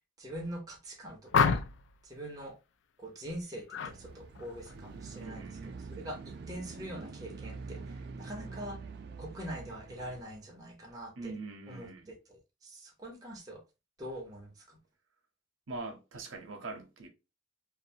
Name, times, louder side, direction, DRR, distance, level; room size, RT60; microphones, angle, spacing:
voice 1, 0.2-1.6 2.0-2.6 3.0-5.5 5.8-6.2 6.5-8.8 9.2-11.3 11.7-13.6 14.0-14.8, equal, 20° right, 0.8 m, -43 dB
sound 1, 1.3-1.9 3.7-4.0 4.3-4.7, left 5 dB, 65° left, 0.3 m, -28 dB
sound 2, 3.8-10.2, right 4 dB, 55° right, 0.3 m, -45 dB
voice 2, 5.2-5.8 11.2-12.1 15.7-17.1, right 3 dB, 90° right, 0.6 m, -43 dB
2.6 x 2.2 x 2.6 m
head